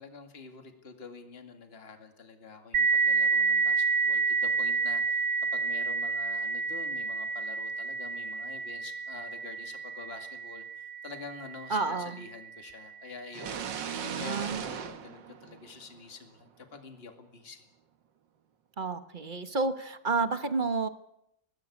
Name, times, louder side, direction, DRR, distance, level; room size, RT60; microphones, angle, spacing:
voice 1, 0.0-17.7, left 5 dB, 35° left, 6 dB, 2.4 m, -47 dB
sound 1, 2.7-12.0, right 4 dB, 50° right, 1.6 m, -29 dB
voice 2, 11.7-12.2 13.9-14.6 18.8-20.9, right 4 dB, 30° right, 10 dB, 1.2 m, -30 dB
sound 2, 13.3-16.1, right 8 dB, 85° right, 2.0 m, -38 dB
23.0 x 18.5 x 8.5 m, 0.81 s
omnidirectional pair, 1.9 m